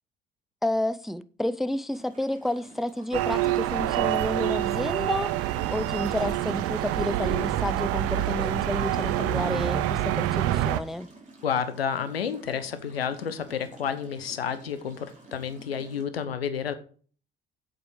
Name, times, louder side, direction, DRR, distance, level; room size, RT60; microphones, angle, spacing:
voice 1, 0.6-11.1, left 1 dB, ahead, 0.5 m, -30 dB
sound 1, 1.9-16.0, right 2 dB, 25° right, 4.2 m, -51 dB
sound 2, 3.1-10.8, right 13 dB, 50° right, 0.7 m, -26 dB
voice 2, 11.4-16.7, left 7 dB, 80° left, 0.9 m, -30 dB
8.2 x 8.1 x 4.8 m
figure-of-eight pair, 50°, 30 cm